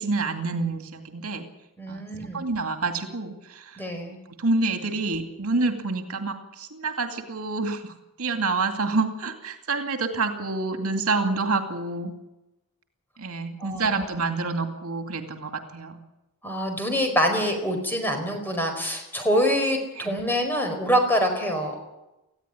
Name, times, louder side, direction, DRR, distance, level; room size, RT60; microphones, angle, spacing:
voice 1, 0.0-1.5 1.9-2.0 2.3-3.8 4.4-12.1 13.2-16.0 19.9-20.2, right 3 dB, 80° right, 6 dB, 2.3 m, -28 dB
voice 2, 1.8-2.5 3.8-4.2 13.6-14.0 16.4-21.8, equal, 10° left, 4 dB, 4.8 m, -25 dB
19.5 x 15.0 x 10.0 m, 0.96 s
head